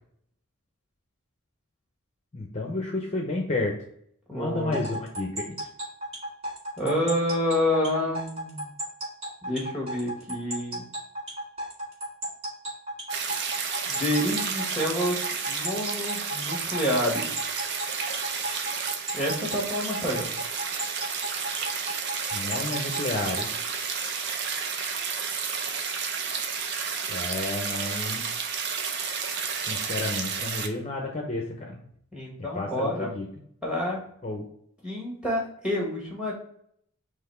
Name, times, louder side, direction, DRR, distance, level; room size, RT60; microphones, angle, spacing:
voice 1, 2.3-3.8 4.3-5.6 22.3-23.5 27.1-28.2 29.7-31.8 32.5-33.3 34.2-34.4, left 2 dB, 30° left, 0 dB, 0.6 m, -31 dB
voice 2, 4.3-4.9 6.8-8.7 9.4-10.8 13.9-17.3 19.1-20.3 32.1-33.1 33.6-34.0 34.8-36.3, left 1 dB, 5° right, -3 dB, 1.4 m, -28 dB
sound 1, 4.7-23.5, right 1 dB, 25° right, 1.6 m, -34 dB
sound 2, 13.1-30.7, right 6 dB, 50° right, 0.5 m, -31 dB
4.0 x 3.0 x 4.2 m, 0.67 s
head